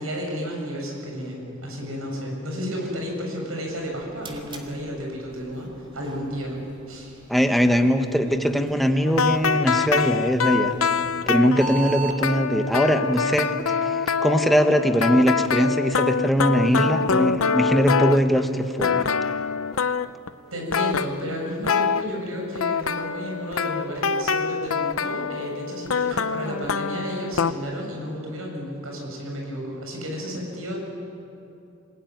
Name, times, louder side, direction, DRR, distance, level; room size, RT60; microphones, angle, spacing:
voice 1, 0.0-6.6 6.9-7.2 20.5-30.8, equal, 90° right, 0 dB, 7.1 m, -32 dB
sound 1, 3.7-12.2, right 4 dB, 25° right, 2.8 m, -40 dB
voice 2, 7.3-10.7 11.3-19.1, equal, ahead, 5 dB, 1.4 m, -21 dB
sound 2, 9.0-18.5 18.8-20.3 20.7-22.0 22.6-27.5, left 5 dB, 80° left, 0.7 m, -25 dB
26.5 x 19.0 x 9.5 m, 2.7 s
head